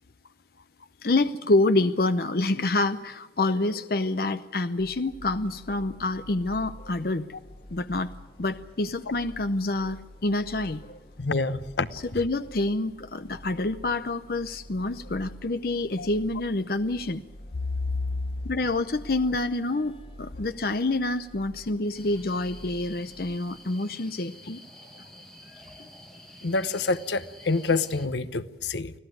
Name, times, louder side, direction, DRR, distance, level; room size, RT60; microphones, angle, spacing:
voice 1, 1.0-7.3 7.7-8.1 8.4-11.0 12.1-17.2 18.4-19.9 20.2-24.6, left 2 dB, 55° left, 0.7 m, -27 dB
sound 1, 4.8-23.4, equal, 30° left, 1.3 m, -48 dB
voice 2, 11.2-11.9 16.0-16.1 26.4-28.9, left 3 dB, 80° left, 1.0 m, -27 dB
sound 2, 21.9-28.1, equal, ahead, 2.0 m, -49 dB
25.5 x 16.0 x 9.3 m
head